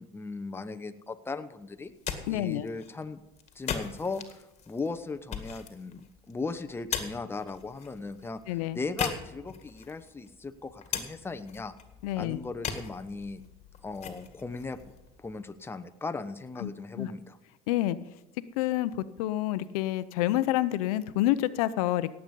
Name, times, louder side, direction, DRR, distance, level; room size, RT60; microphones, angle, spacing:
voice 1, 0.0-1.9 2.3-3.2 3.5-11.7 12.2-13.4 13.8-14.8 15.2-17.4, left 3 dB, 15° left, 9 dB, 0.8 m, -37 dB
sound 1, 1.8-15.7, left 7 dB, 40° left, 2.0 m, -40 dB
voice 2, 2.3-2.7 8.5-8.8 12.0-12.4 16.6-16.7 17.0-17.1 17.7-18.0 18.6-18.9 19.2-22.1, left 14 dB, 85° left, 14 dB, 0.6 m, -28 dB
17.5 x 8.0 x 5.3 m, 1.0 s
supercardioid pair, 100°, 18 cm